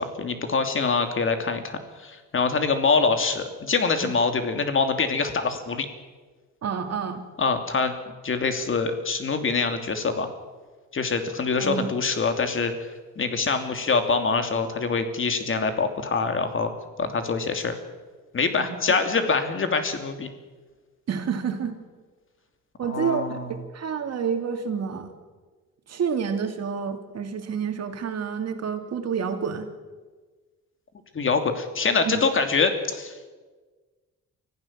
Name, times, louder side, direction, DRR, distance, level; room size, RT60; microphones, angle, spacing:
voice 1, 0.0-5.9 7.4-7.9 8.2-10.3 10.9-12.7 13.2-16.7 17.0-17.7 18.3-20.3 22.8-23.5 31.1-33.2, left 4 dB, 40° left, 7 dB, 2.9 m, -24 dB
voice 2, 6.6-7.2 11.6-11.9 18.5-18.8 21.1-21.8 22.8-25.1 25.9-29.7 32.0-32.2, right 6 dB, 55° right, 6 dB, 2.7 m, -29 dB
24.5 x 15.0 x 7.5 m, 1.4 s
cardioid pair, 90°, 30 cm